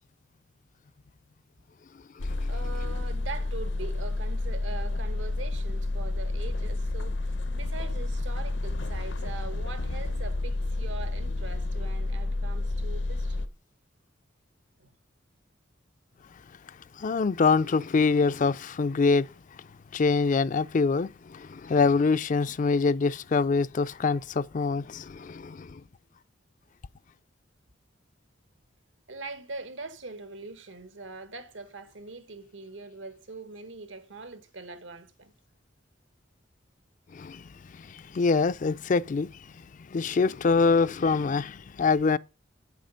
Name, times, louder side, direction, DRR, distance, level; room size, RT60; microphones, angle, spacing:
sound 1, 2.2-13.5, left 2 dB, 70° left, 0.8 m, -30 dB
voice 1, 2.4-7.2 7.5-13.4 14.8-14.9 29.1-35.3, right 3 dB, 85° right, 1.4 m, -42 dB
voice 2, 17.0-19.3 19.9-25.8 37.1-39.3 39.9-42.2, left 4 dB, 45° left, 0.4 m, -25 dB
9.0 x 7.6 x 5.2 m
head